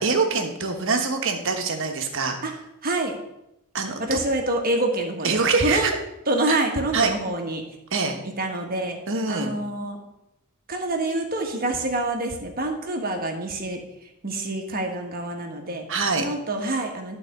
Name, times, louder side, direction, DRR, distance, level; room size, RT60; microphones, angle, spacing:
voice 1, 0.0-2.4 3.7-4.2 5.2-5.9 6.5-6.6 6.9-7.1 7.9-8.2 9.1-9.5 15.9-16.2, right 4 dB, 60° right, 4 dB, 1.3 m, -24 dB
voice 2, 2.8-3.2 4.0-5.9 6.3-7.6 8.4-9.0 9.3-10.0 10.7-13.8 14.2-15.8 16.2-17.2, right 2 dB, 40° right, 3 dB, 1.4 m, -26 dB
11.5 x 4.2 x 6.7 m, 0.88 s
head